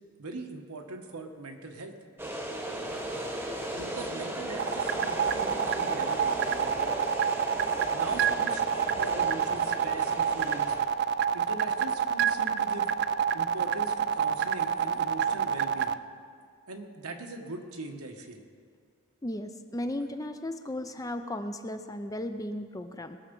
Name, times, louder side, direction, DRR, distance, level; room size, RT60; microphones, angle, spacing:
voice 1, 0.2-2.0 3.8-7.1 7.9-10.8 11.3-12.9 13.3-16.0 16.7-18.4, right 2 dB, 85° right, 3 dB, 1.3 m, -41 dB
sound 1, 2.2-10.8, right 1 dB, 10° right, 1.0 m, -36 dB
sound 2, 4.6-15.9, right 8 dB, 45° right, 0.3 m, -27 dB
voice 2, 19.2-23.2, left 1 dB, 15° left, 8 dB, 0.4 m, -35 dB
20.5 x 7.0 x 5.4 m, 2.1 s
head